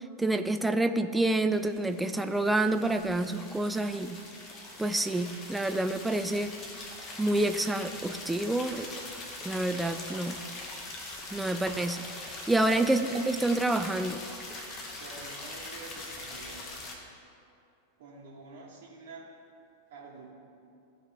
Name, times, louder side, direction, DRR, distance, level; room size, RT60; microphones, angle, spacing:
voice 1, 0.2-4.2 4.8-6.5 7.2-8.9 9.4-10.4 11.3-14.2, right 2 dB, 5° right, 9 dB, 0.3 m, -28 dB
sound 1, 1.5-17.0, left 2 dB, 30° left, 1.2 m, -42 dB
voice 2, 12.6-13.0 14.9-16.6 18.0-19.3 19.9-20.3, right 3 dB, 55° right, -4 dB, 1.3 m, -47 dB
14.0 x 5.0 x 3.4 m, 2.5 s
figure-of-eight pair, 90°, 0 cm